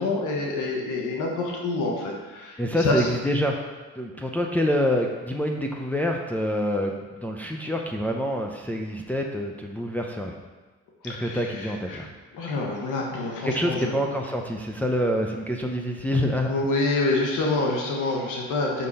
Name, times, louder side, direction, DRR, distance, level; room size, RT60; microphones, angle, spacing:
voice 1, 0.0-3.1 11.0-12.0 12.3-13.9 16.5-18.9, left 2 dB, 85° left, -1 dB, 1.3 m, -27 dB
voice 2, 2.6-3.7 4.0-10.3 11.0-12.1 13.4-16.7, equal, 5° left, 1 dB, 0.7 m, -26 dB
6.5 x 5.8 x 4.2 m, 1.3 s
cardioid pair, 90°, 30 cm